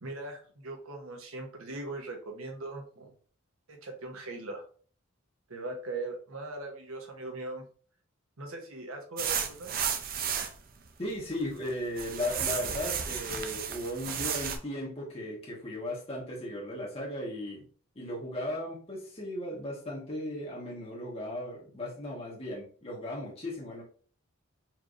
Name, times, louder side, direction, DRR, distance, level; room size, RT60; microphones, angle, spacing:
voice 1, 0.0-3.1 3.7-4.6 5.5-7.6 8.4-9.7, right 2 dB, 85° right, 3 dB, 1.1 m, -40 dB
sound 1, 9.2-10.6 11.2-11.7 12.0-14.6, right 7 dB, 45° right, 0.5 m, -33 dB
voice 2, 11.0-17.6 17.9-23.8, left 1 dB, 30° left, -5 dB, 1.2 m, -36 dB
4.5 x 3.2 x 2.5 m, 0.43 s
head